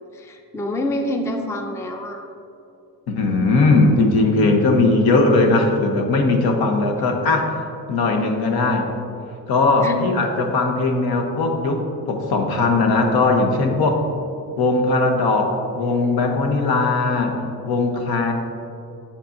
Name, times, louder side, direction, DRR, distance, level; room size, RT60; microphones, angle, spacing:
voice 1, 0.1-2.3 9.8-10.0, left 1 dB, 10° left, 4 dB, 0.4 m, -27 dB
voice 2, 3.1-7.5 7.9-8.9 9.5-14.1 14.6-17.4 17.6-18.3, left 3 dB, 75° left, 3 dB, 1.0 m, -19 dB
8.3 x 6.9 x 2.6 m, 2.6 s
cardioid pair, 120°, 37 cm